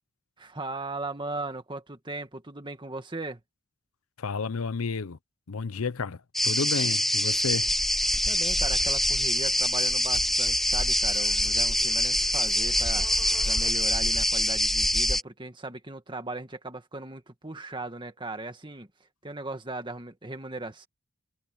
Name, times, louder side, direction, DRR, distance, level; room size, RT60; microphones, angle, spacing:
voice 1, 0.4-3.4 8.2-13.0 13.4-18.9 19.2-20.9, right 2 dB, 20° right, 1.9 m, -38 dB
voice 2, 4.2-5.2 5.5-7.7, left 4 dB, 75° left, 0.7 m, -31 dB
sound 1, 6.3-15.2, left 1 dB, ahead, 0.3 m, -25 dB
sound 2, 8.1-14.2, right 1 dB, 75° right, 4.3 m, -48 dB
head